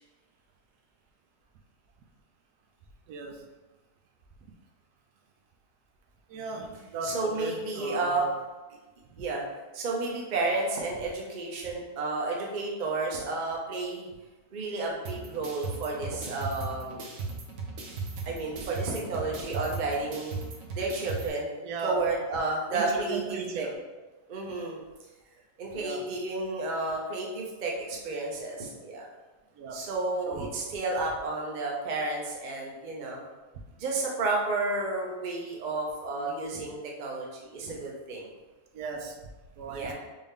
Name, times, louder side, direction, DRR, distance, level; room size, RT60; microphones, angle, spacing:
voice 1, 3.1-3.5 6.3-8.3 9.1-9.3 21.6-22.0 22.7-23.8 25.7-26.1 29.5-29.9 30.3-30.5 38.7-39.9, right 4 dB, 90° right, 3 dB, 1.2 m, -37 dB
voice 2, 7.0-8.2 9.2-9.5 9.7-14.1 14.5-17.1 18.3-20.4 20.7-21.5 21.8-23.6 24.3-24.8 25.6-29.1 29.7-33.2 33.8-38.3 39.7-39.9, right 3 dB, 50° right, -1 dB, 0.5 m, -31 dB
sound 1, 15.1-21.3, right 4 dB, 65° right, 1.0 m, -37 dB
3.7 x 2.6 x 3.5 m, 1.2 s
omnidirectional pair, 1.7 m